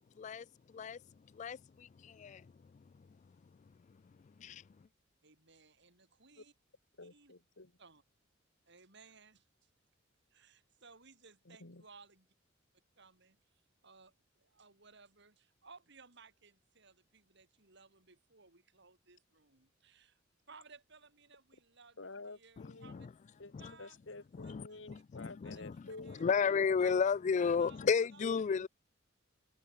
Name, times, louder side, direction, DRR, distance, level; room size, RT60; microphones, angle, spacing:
voice 1, 0.2-1.0 1.3-2.5 2.7-2.8 4.2-4.6 22.6-23.1 23.5-23.7 24.3-28.7, left 6 dB, 35° left, 0.3 m, -34 dB
voice 2, 5.2-6.5 7.0-7.3 7.8-8.0 8.7-9.5 10.3-12.3 13.0-13.4 13.8-20.2 20.5-23.1 23.6-24.0 24.4-25.7 26.0-26.2 26.8-26.9 27.6-27.8 28.1-28.3, right 4 dB, 60° right, 5.6 m, -60 dB
voice 3, 7.0-7.7 11.5-11.8 22.0-23.0 23.4-23.5 23.8-26.8 28.0-28.7, left 3 dB, 70° left, 2.1 m, -49 dB
head